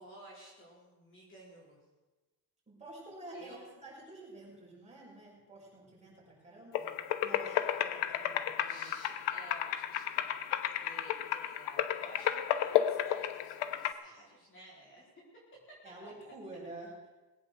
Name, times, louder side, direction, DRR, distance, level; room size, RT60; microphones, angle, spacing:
voice 1, 0.0-1.8 3.3-3.6 8.6-15.1 16.0-16.1, right 1 dB, 30° left, -4 dB, 4.6 m, -54 dB
voice 2, 2.7-6.9 7.2-8.9 15.8-17.1, right 2 dB, 15° right, -5 dB, 6.2 m, -49 dB
sound 1, 6.7-13.9, left 11 dB, 90° left, 1.0 m, -33 dB
20.0 x 8.5 x 6.8 m, 1.2 s
cardioid pair, 165°, 41 cm